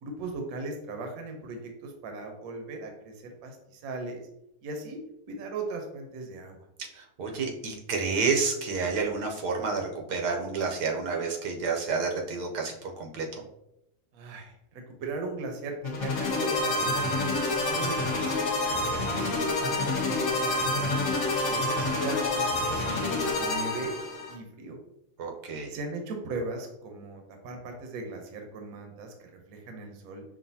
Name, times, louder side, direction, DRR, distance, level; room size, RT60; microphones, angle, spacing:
voice 1, 0.0-4.3 4.6-5.0 5.3-6.7 14.1-18.5 19.0-21.1 21.5-24.0 24.3-24.8 25.7-30.2, right 3 dB, 70° right, 3 dB, 1.1 m, -38 dB
voice 2, 6.9-13.4 18.6-18.9 25.2-25.7, right 4 dB, 90° right, 1 dB, 1.3 m, -30 dB
sound 1, 15.8-24.3, left 2 dB, 55° left, 1.0 m, -28 dB
5.3 x 2.5 x 2.7 m, 0.81 s
omnidirectional pair, 1.7 m